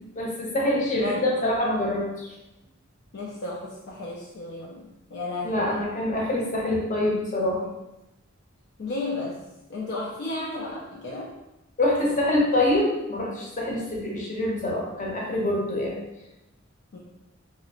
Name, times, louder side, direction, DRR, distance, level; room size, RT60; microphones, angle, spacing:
voice 1, 0.2-2.3 5.4-7.7 11.8-16.0, left 1 dB, 40° left, -3 dB, 0.8 m, -25 dB
voice 2, 0.9-1.3 3.1-5.8 8.8-9.4 9.7-11.3 16.9-17.0, left 2 dB, 55° left, -4 dB, 0.4 m, -33 dB
3.1 x 2.8 x 2.8 m, 0.94 s
head